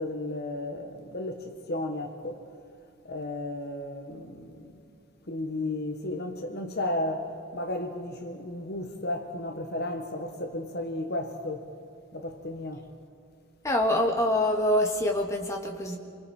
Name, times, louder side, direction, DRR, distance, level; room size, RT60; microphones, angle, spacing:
voice 1, 0.0-2.4 3.0-4.8 5.3-11.7 12.1-12.9, left 1 dB, 45° left, 1.5 m, -34 dB
voice 2, 13.6-16.0, left 1 dB, 15° left, 2.0 m, -25 dB
28.5 x 25.0 x 4.4 m
head